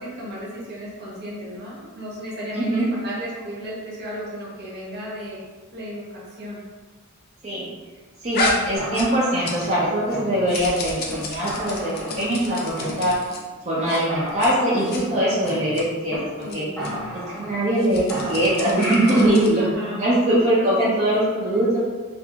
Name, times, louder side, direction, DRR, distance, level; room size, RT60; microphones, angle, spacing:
voice 1, 0.0-5.4 5.7-6.6 12.5-12.7 16.4-16.7 19.5-20.1 20.5-20.9, equal, 50° right, -6 dB, 0.8 m, -34 dB
voice 2, 8.2-13.2 13.6-16.6 17.3-21.8, right 1 dB, 35° right, -9 dB, 0.5 m, -22 dB
sound 1, 8.3-9.8 10.1-13.4 13.8-14.0 14.3-14.5 14.8-15.0 15.4-15.8 16.4-16.6 16.8-16.9 17.7-19.6, left 2 dB, 45° left, 0.4 m, -30 dB
sound 2, 8.8-10.7 11.1-11.2 11.4-12.5 12.8-13.5 13.8-13.9 14.1-16.2 16.4-16.5 16.8-17.8 18.1-19.4, equal, 5° left, 1.0 m, -33 dB
2.7 x 2.5 x 2.2 m, 1.4 s
head